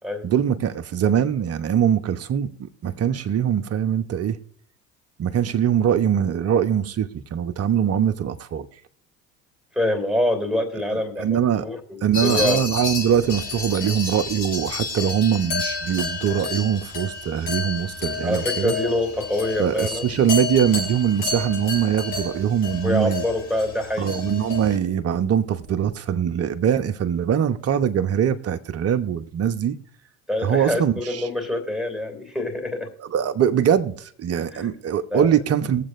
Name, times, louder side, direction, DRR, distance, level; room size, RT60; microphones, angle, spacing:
voice 1, 0.2-4.4 5.2-8.7 10.9-11.7 12.0-18.7 19.6-23.2 24.0-29.8 30.4-31.3 33.0-35.8, right 9 dB, 40° right, 1.0 m, -22 dB
voice 2, 9.7-12.6 18.2-20.3 22.8-24.1 30.3-32.9 34.5-34.7 35.1-35.3, left 1 dB, ahead, 2.8 m, -25 dB
sound 1, 12.1-24.8, left 4 dB, 75° left, 4.9 m, -30 dB
22.0 x 7.5 x 2.6 m
hypercardioid pair, 65°, 38 cm